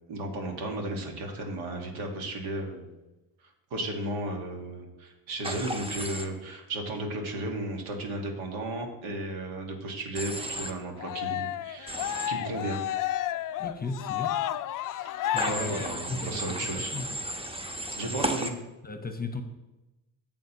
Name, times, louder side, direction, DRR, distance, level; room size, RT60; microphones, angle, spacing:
voice 1, 0.1-2.9 3.7-12.8 15.0-15.1 15.5-16.9 18.0-18.5, right 1 dB, 70° right, 2 dB, 1.8 m, -34 dB
Human voice / Train, 5.4-6.2 10.1-10.7 11.9-12.3 15.4-18.5, right 1 dB, 10° right, 0.9 m, -34 dB
Cheering, 11.0-16.5, left 12 dB, 45° left, 0.4 m, -32 dB
voice 2, 13.6-14.4 15.3-17.2 18.8-19.4, left 3 dB, 20° left, 6 dB, 0.9 m, -36 dB
9.2 x 7.5 x 2.9 m, 1.0 s
supercardioid pair, 65°, 50 cm